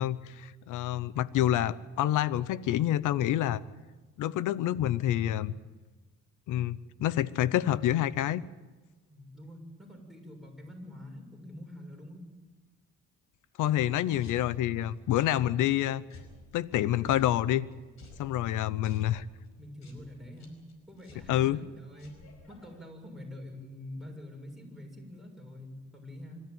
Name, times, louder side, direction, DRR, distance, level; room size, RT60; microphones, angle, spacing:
voice 1, 0.0-3.6 4.2-5.5 6.5-8.4 13.6-16.0 16.5-17.7 18.2-19.2 21.3-21.6, left 12 dB, 85° left, 19 dB, 0.8 m, -27 dB
voice 2, 9.1-12.2 18.8-19.0 19.6-20.6 20.9-22.1 22.5-26.4, left 1 dB, ahead, -1 dB, 6.9 m, -46 dB
sound 1, 13.9-22.8, left 2 dB, 65° left, 5.1 m, -54 dB
26.0 x 13.5 x 9.3 m, 1.2 s
cardioid pair, 90°, 30 cm